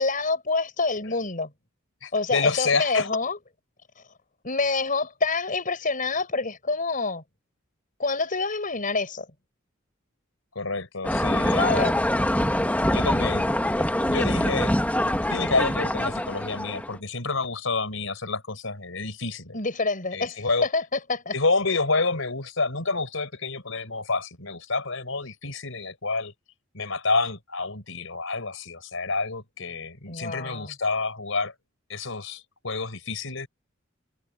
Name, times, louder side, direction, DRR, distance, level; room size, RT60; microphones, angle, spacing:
voice 1, 0.0-1.5 2.1-3.4 4.4-7.2 8.0-9.3 11.6-12.0 19.5-21.3 30.1-30.7, left 3 dB, 45° left, 5.3 m, -27 dB
voice 2, 2.0-3.2 10.5-11.8 12.9-13.5 14.1-14.7 15.0-19.6 20.1-20.7 21.3-26.3 26.7-31.5 31.9-33.5, left 3 dB, 80° left, 4.8 m, -28 dB
sound 1, 11.0-17.0, left 1 dB, 10° left, 1.5 m, -24 dB
head